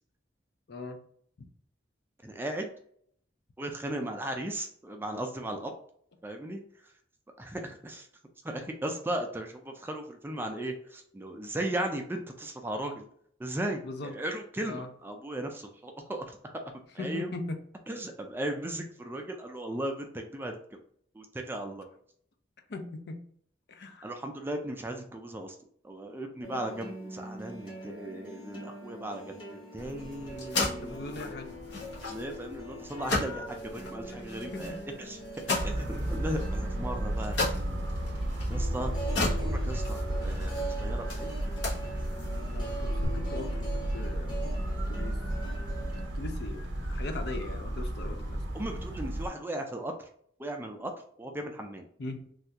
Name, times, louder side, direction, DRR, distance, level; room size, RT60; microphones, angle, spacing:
voice 1, 0.7-1.0 1.4-1.5 13.8-14.2 14.6-14.9 17.0-17.6 22.7-23.2 23.7-24.1 30.8-31.6 34.1-34.8 42.5-44.5 44.9-45.2 46.1-48.4 52.0-52.3, left 2 dB, 60° left, 6 dB, 0.5 m, -40 dB
voice 2, 2.2-2.7 3.6-5.7 6.2-6.6 7.4-8.1 8.4-13.0 13.4-16.5 16.9-17.3 17.9-20.8 21.1-21.9 24.0-25.6 25.8-31.4 32.1-35.2 35.5-37.8 38.5-38.9 39.2-41.3 48.5-50.1 50.4-50.9 51.2-51.9, right 1 dB, 10° right, 3 dB, 0.3 m, -37 dB
sound 1, 26.4-46.1, right 2 dB, 25° left, 0.9 m, -43 dB
sound 2, 29.8-43.1, left 2 dB, 80° left, 1.2 m, -37 dB
sound 3, 35.6-49.3, right 1 dB, 80° right, 0.7 m, -33 dB
3.3 x 2.4 x 2.8 m, 0.63 s
head